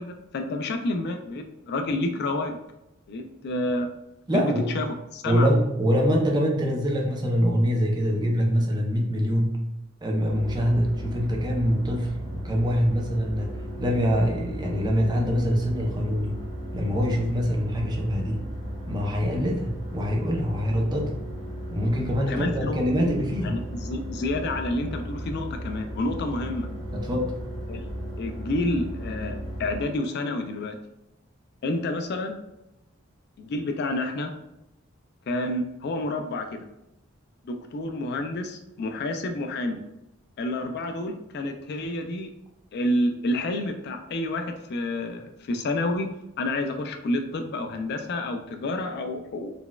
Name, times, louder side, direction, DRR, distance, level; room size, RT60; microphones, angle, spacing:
voice 1, 0.0-2.6 3.1-3.9 4.3-4.9 5.1-5.5 22.3-22.8 23.4-26.7 27.7-27.8 28.2-30.8 31.6-32.4 33.4-34.3 35.3-36.6 37.4-39.8 40.4-42.3 42.7-46.1 46.4-49.5, left 2 dB, 50° left, 6 dB, 0.3 m, -29 dB
voice 2, 4.3-4.7 5.2-9.6 10.0-13.5 13.8-16.3 16.7-18.4 18.9-21.2 21.7-23.6 26.9-27.4, equal, 20° right, 0 dB, 0.4 m, -24 dB
sound 1, 10.3-29.8, equal, 85° right, 1.1 m, -35 dB
3.9 x 2.2 x 2.2 m, 0.89 s
head